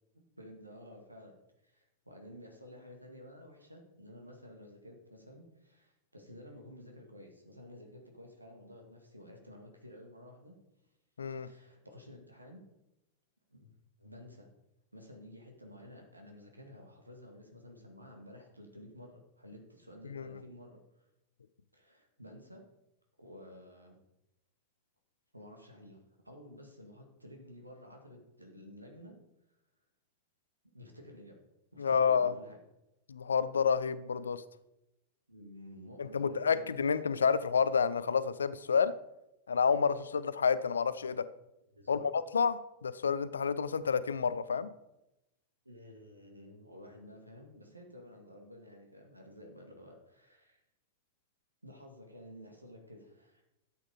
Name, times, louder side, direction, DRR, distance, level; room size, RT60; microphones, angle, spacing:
voice 1, 0.1-1.4 1.6-10.5 11.3-12.6 13.5-13.7 14.0-14.5 14.9-20.8 21.7-22.6 23.2-24.0 25.3-29.2 30.7-31.4 31.7-32.6 35.3-36.7 41.7-42.1 45.6-50.6 51.6-53.4, left 1 dB, 85° right, 3 dB, 2.1 m, -52 dB
voice 2, 11.2-11.5 20.1-20.4 31.8-32.3 33.1-34.4 36.0-39.0 39.5-41.3 41.9-44.7, left 6 dB, 70° left, 16 dB, 0.6 m, -29 dB
12.0 x 8.2 x 5.0 m, 0.91 s
figure-of-eight pair, 90°, 0 cm